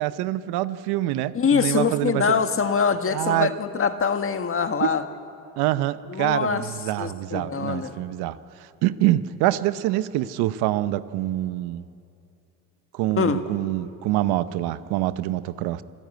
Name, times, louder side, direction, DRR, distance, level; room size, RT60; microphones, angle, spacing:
voice 1, 0.0-2.4 3.1-3.5 4.8-4.9 5.6-8.4 8.8-11.8 12.9-15.8, right 15 dB, 75° right, 14 dB, 0.9 m, -25 dB
voice 2, 1.3-5.0 6.1-6.6 7.0-8.0 13.2-13.4, left 6 dB, 35° left, 8 dB, 1.6 m, -23 dB
26.5 x 13.0 x 9.3 m, 2.6 s
supercardioid pair, 90°, 39 cm